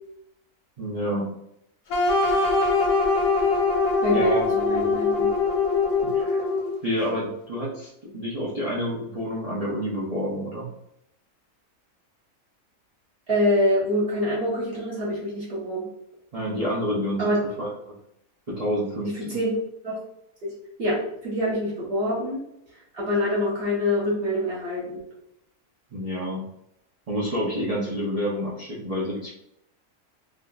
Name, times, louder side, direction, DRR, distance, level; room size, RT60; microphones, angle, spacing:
voice 1, 0.8-1.3 3.4-3.5 4.1-4.5 6.1-6.4 6.8-10.7 16.3-17.3 17.6-17.9 18.6-19.3 25.9-26.4 27.1-29.3, equal, 70° right, -7 dB, 0.3 m, -28 dB
sound 1, 1.9-6.8, left 3 dB, 90° left, 1.3 m, -22 dB
voice 2, 4.0-5.3 13.3-15.9 17.2-17.3 19.1-19.5 19.8-20.0 20.4-20.5 20.8-22.4 22.9-25.0, left 1 dB, 45° right, -7 dB, 1.2 m, -25 dB
3.6 x 2.5 x 2.3 m, 0.77 s
omnidirectional pair, 1.6 m